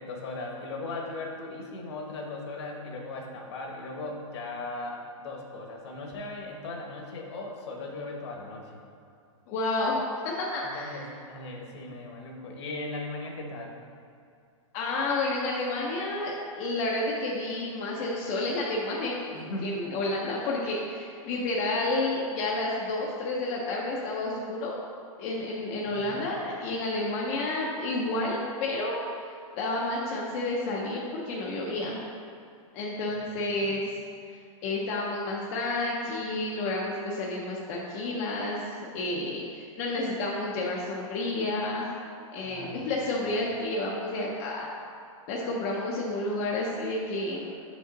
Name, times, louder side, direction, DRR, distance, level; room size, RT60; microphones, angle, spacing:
voice 1, 0.0-8.8 10.7-13.7 19.3-19.7 25.9-26.3 33.3-33.7 42.4-43.1, left 2 dB, 50° left, 1 dB, 1.0 m, -38 dB
voice 2, 9.5-10.0 10.5-11.0 14.7-24.8 25.2-29.0 29.5-32.0 32.7-33.8 34.6-38.6 38.9-41.9 42.3-44.7 45.3-47.6, left 2 dB, 25° left, -3 dB, 0.5 m, -30 dB
5.8 x 5.2 x 3.8 m, 2.4 s
supercardioid pair, 170°, 17 cm